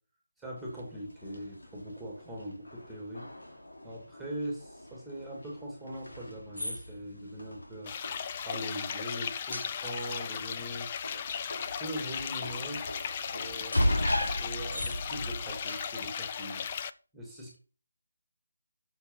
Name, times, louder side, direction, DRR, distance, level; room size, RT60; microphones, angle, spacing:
voice 1, 0.4-3.3 3.8-7.9 8.4-10.9 11.8-13.8 14.4-16.7 17.1-17.6, equal, ahead, -4 dB, 2.4 m, -41 dB
sound 1, 0.6-16.8, left 1 dB, 80° left, 3.0 m, -37 dB
sound 2, 7.9-16.9, left 7 dB, 25° left, 0.5 m, -37 dB
8.8 x 6.7 x 5.4 m, 0.38 s
figure-of-eight pair, 165°, 0 cm